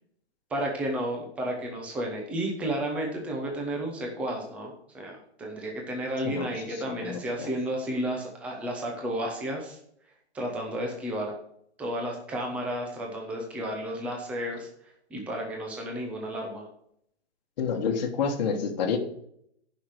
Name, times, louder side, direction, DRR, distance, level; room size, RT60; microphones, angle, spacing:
voice 1, 0.5-9.8 10.3-11.3 11.8-14.7 15.1-16.7, right 1 dB, 5° right, 1 dB, 0.7 m, -32 dB
voice 2, 7.0-7.5 17.6-19.0, left 6 dB, 40° left, 1 dB, 1.4 m, -28 dB
9.6 x 5.8 x 6.5 m, 0.71 s
hypercardioid pair, 160°, 34 cm